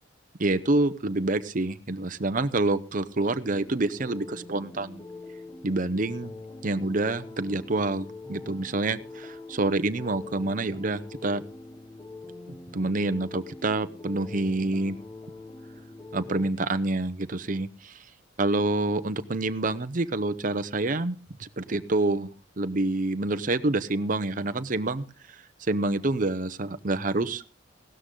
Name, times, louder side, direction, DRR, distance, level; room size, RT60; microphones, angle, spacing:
voice 1, 0.4-5.0 5.6-6.3 6.6-11.4 12.5-15.0 16.1-18.0 18.4-22.3 22.6-27.4, right 2 dB, 45° right, 12 dB, 0.8 m, -27 dB
sound 1, 3.5-16.5, left 3 dB, 20° left, 0.8 m, -44 dB
17.0 x 13.0 x 3.8 m, 0.35 s
head